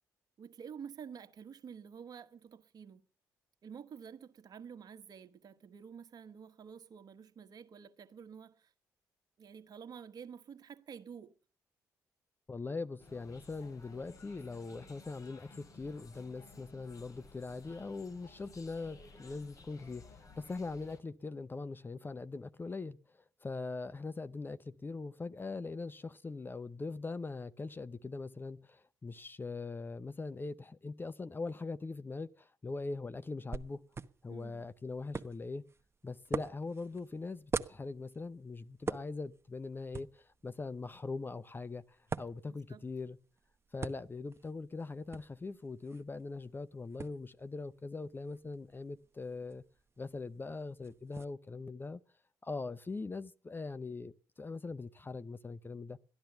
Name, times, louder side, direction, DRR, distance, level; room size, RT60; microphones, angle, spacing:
voice 1, 0.4-3.0 3.6-8.7 9.4-11.3 34.3-34.6 42.4-42.8, right 7 dB, 55° right, 1.4 m, -50 dB
voice 2, 12.5-23.0 23.4-33.8 34.2-35.6 36.0-43.2 43.7-49.6 50.0-52.0 52.4-54.1 54.4-56.0, left 3 dB, 25° left, 0.7 m, -41 dB
sound 1, 13.0-21.0, left 3 dB, 45° left, 2.8 m, -56 dB
sound 2, 33.5-51.2, right 4 dB, 35° right, 1.0 m, -46 dB
13.5 x 10.5 x 6.8 m
supercardioid pair, 55°, 8 cm